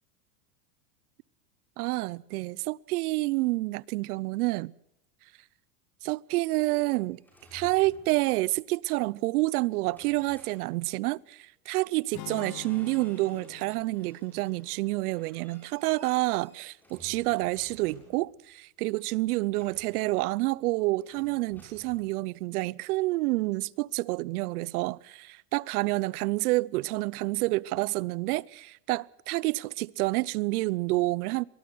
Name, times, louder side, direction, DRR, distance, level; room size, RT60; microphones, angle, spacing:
voice 1, 1.8-4.7 6.0-7.2 7.5-31.4, right 21 dB, 70° right, 0.7 m, -28 dB
sound 1, 6.1-8.6 9.9-11.2 11.8-12.0 12.3-13.6 13.9-18.5 19.5-20.6 21.0-22.0, left 1 dB, 5° left, 7.1 m, -56 dB
sound 2, 12.1-16.3, left 17 dB, 40° left, 1.0 m, -47 dB
23.5 x 19.0 x 6.2 m
supercardioid pair, 145°, 46 cm